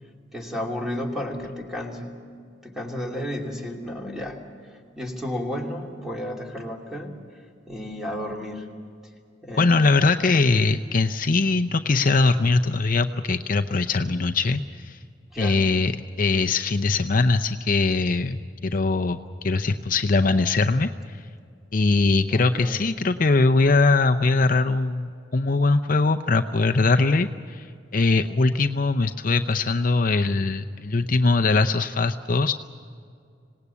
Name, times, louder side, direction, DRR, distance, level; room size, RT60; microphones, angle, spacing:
voice 1, 0.3-2.2 2.6-4.5 4.7-7.1 7.7-8.7 9.4-9.9 15.3-15.6 22.3-22.8, left 1 dB, ahead, 0 dB, 2.8 m, -32 dB
voice 2, 9.6-15.0 15.4-15.9 16.2-21.2 21.7-27.7 27.9-32.5, left 3 dB, 45° left, 7 dB, 0.7 m, -21 dB
26.5 x 18.5 x 8.4 m, 2.3 s
head